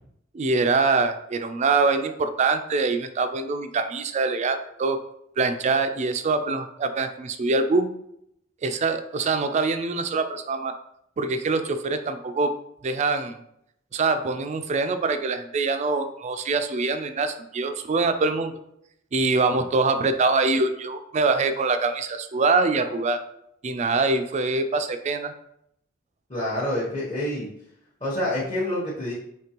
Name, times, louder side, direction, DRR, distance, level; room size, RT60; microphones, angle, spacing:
voice 1, 0.3-5.0 5.4-7.9 8.6-10.7 11.2-12.5 12.8-13.4 13.9-18.5 19.1-23.2 23.6-25.3, right 3 dB, 35° right, 9 dB, 0.3 m, -24 dB
voice 2, 26.3-27.5 28.0-29.1, left 1 dB, 30° left, -7 dB, 1.0 m, -27 dB
5.1 x 3.2 x 2.9 m, 0.76 s
head